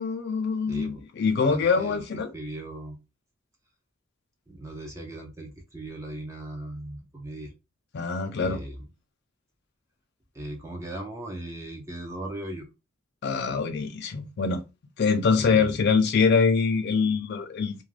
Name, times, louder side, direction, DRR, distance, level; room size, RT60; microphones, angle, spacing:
voice 1, 0.0-2.3 7.9-8.6 13.2-14.6 15.0-17.8, left 5 dB, 55° left, 0.4 m, -24 dB
voice 2, 0.7-1.0 1.4-2.0 2.3-3.0 4.5-7.5 8.4-8.9 10.3-12.6 15.4-15.8, right 1 dB, 15° right, 0.5 m, -38 dB
2.3 x 2.2 x 3.2 m
head